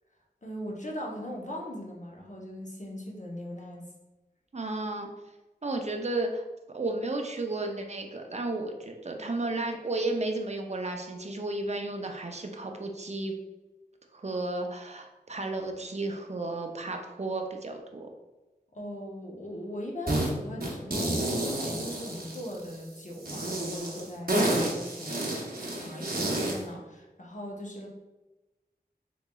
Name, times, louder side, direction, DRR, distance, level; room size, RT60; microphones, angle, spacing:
voice 1, 0.4-3.9 18.7-27.9, equal, 45° left, -1 dB, 0.7 m, -40 dB
voice 2, 4.5-5.1 5.6-6.4 6.7-13.3 14.1-18.1, right 2 dB, 40° right, 3 dB, 0.5 m, -33 dB
sound 1, 20.1-20.3 20.6-22.7 23.2-26.6, right 1 dB, 60° right, 0.8 m, -30 dB
3.8 x 2.9 x 2.3 m, 1.1 s
wide cardioid pair, 40°, 17 cm